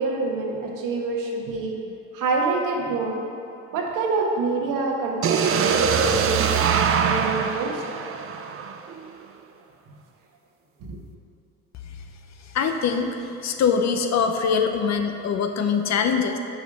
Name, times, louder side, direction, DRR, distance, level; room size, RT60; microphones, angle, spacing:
voice 1, 0.0-1.8 2.1-3.3 3.7-7.8 10.8-11.0, right 3 dB, 60° right, 0 dB, 1.4 m, -26 dB
sound 1, 5.2-9.1, right 7 dB, 40° right, 0.6 m, -23 dB
voice 2, 12.5-13.2 13.4-16.4, left 6 dB, 50° left, 6 dB, 0.8 m, -23 dB
6.8 x 4.9 x 6.5 m, 2.8 s
supercardioid pair, 70°, 36 cm